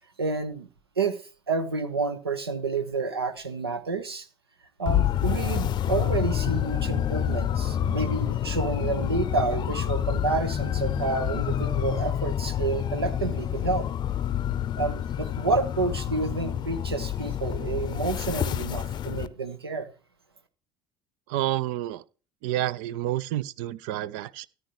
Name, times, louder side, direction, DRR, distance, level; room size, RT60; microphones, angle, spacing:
voice 1, 0.2-0.7 1.0-4.3 4.8-13.9 14.8-19.9, right 4 dB, 80° right, 1.1 m, -29 dB
sound 1, 4.8-19.3, left 10 dB, 35° left, 0.6 m, -28 dB
voice 2, 21.3-22.0 22.4-24.5, right 14 dB, 55° right, 0.5 m, -29 dB
14.0 x 9.6 x 3.0 m
figure-of-eight pair, 60°, 13 cm